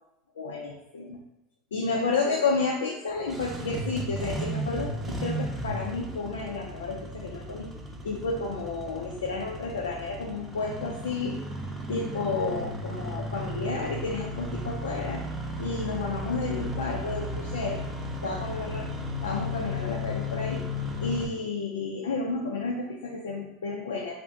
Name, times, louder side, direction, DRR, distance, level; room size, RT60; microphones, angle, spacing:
voice 1, 0.4-1.2 1.7-7.7 8.0-11.4 11.9-15.2 15.6-17.9 18.2-18.9 19.2-20.7 21.0-24.1, left 4 dB, 85° left, 0 dB, 0.4 m, -31 dB
Engine starting, 3.1-21.3, left 1 dB, 20° right, 0.7 m, -35 dB
2.6 x 2.4 x 3.4 m, 0.88 s
hypercardioid pair, 85°, 0 cm